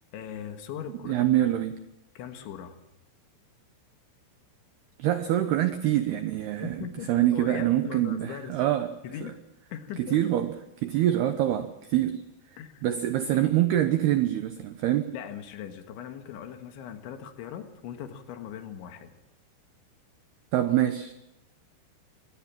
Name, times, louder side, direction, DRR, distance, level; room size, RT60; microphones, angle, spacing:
voice 1, 0.1-1.3 2.2-2.8 6.6-8.6 9.0-9.4 9.7-10.2 12.6-12.8 13.3-13.4 15.1-19.2, left 9 dB, 70° left, 7 dB, 3.7 m, -39 dB
voice 2, 1.1-1.8 5.0-8.9 10.0-10.5 10.8-12.2 12.8-15.1 20.5-21.1, right 13 dB, 80° right, 9 dB, 2.3 m, -25 dB
24.5 x 18.5 x 7.5 m, 0.87 s
omnidirectional pair, 5.9 m